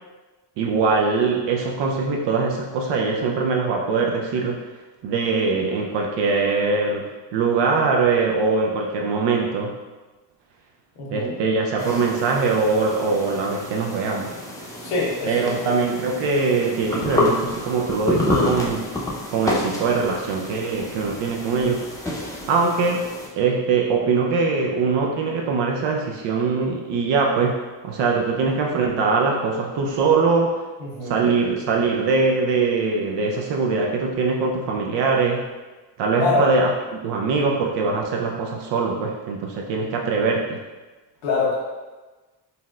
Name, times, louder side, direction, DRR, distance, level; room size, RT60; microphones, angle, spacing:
voice 1, 0.6-4.7 5.0-9.7 11.1-14.3 15.3-18.9 19.3-21.8 22.5-23.1 23.4-30.6 31.0-35.5 36.0-40.6, right 4 dB, 65° right, 0 dB, 0.5 m, -22 dB
voice 2, 11.0-11.3 14.8-15.5 30.8-31.3 36.2-36.4 41.2-41.5, left 3 dB, 85° left, -4 dB, 1.0 m, -24 dB
sound 1, 11.8-23.3, left 2 dB, 5° left, 0.6 m, -28 dB
4.0 x 2.1 x 2.3 m, 1.2 s
supercardioid pair, 70°, 47 cm